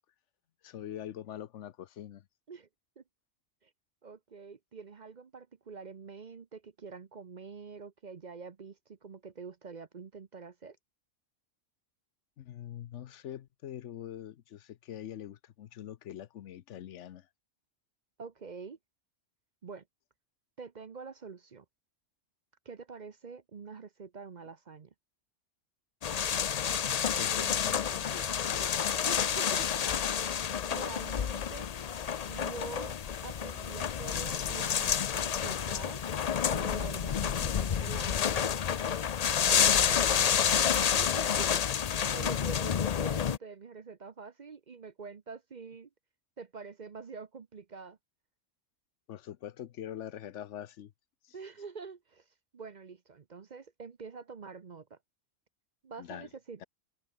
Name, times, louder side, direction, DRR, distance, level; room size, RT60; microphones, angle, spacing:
voice 1, 0.6-2.2 12.4-17.3 27.2-28.8 29.8-30.0 49.1-50.9 51.2-51.3 56.0-56.3 56.6-56.7, left 11 dB, 75° left, 1.0 m, -43 dB
voice 2, 4.0-10.8 18.2-18.8 19.6-19.8 20.6-21.6 22.6-24.9 29.1-30.3 30.6-31.7 32.3-33.0 33.2-36.0 36.5-38.6 39.5-40.4 40.7-45.9 46.4-48.0 51.3-52.3 52.5-55.0 55.8-56.6, right 5 dB, 40° right, 0.8 m, -46 dB
sound 1, 26.0-43.4, left 8 dB, 45° left, 0.5 m, -29 dB
omnidirectional pair, 1.2 m